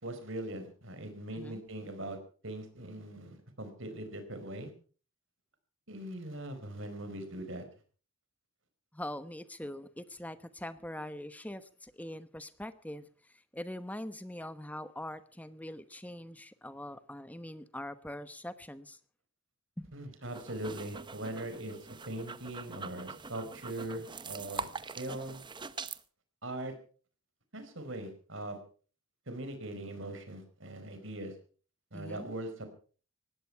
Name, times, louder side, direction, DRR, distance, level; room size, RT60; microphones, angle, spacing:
voice 1, 0.0-2.2 2.4-4.7 5.9-7.6 19.9-21.8 22.1-24.7 25.0-25.4 26.4-26.7 27.5-28.6 29.3-31.3 31.9-32.7, right 1 dB, 60° right, 8 dB, 4.4 m, -41 dB
voice 2, 8.9-19.0 19.8-19.9 31.9-32.3, left 1 dB, 5° left, 12 dB, 1.0 m, -43 dB
sound 1, 20.2-26.0, right 5 dB, 20° right, 0.8 m, -43 dB
19.5 x 16.0 x 4.6 m, 0.41 s
head